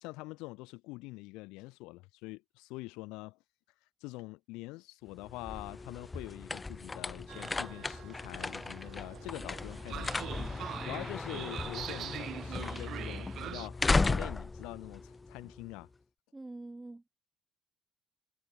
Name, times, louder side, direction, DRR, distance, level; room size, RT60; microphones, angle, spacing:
voice 1, 0.0-3.4 4.0-10.5 10.8-15.9, left 23 dB, 75° left, 0.3 m, -45 dB
sound 1, 5.1-15.8, left 3 dB, 25° left, 0.8 m, -36 dB
Train, 7.3-13.7, right 11 dB, 60° right, 0.3 m, -44 dB
voice 2, 10.7-11.3 16.3-17.0, right 2 dB, 15° right, 0.9 m, -46 dB
hypercardioid pair, 55°, 0 cm